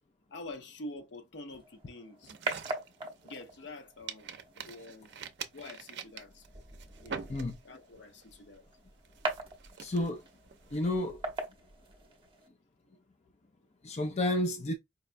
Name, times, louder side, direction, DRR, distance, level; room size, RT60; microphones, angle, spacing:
voice 1, 0.3-2.3 3.2-5.1 5.5-6.5 7.0-7.2 7.6-8.6, left 2 dB, 70° left, 0.7 m, -46 dB
sound 1, 1.5-12.5, right 3 dB, 30° right, 0.8 m, -42 dB
sound 2, 2.2-3.7 4.1-7.9 8.2-8.6 9.1-11.4, right 6 dB, 65° right, 0.5 m, -45 dB
voice 2, 9.8-10.2 10.7-11.2 13.8-14.7, left 1 dB, 40° left, 0.5 m, -31 dB
4.8 x 2.2 x 2.5 m
head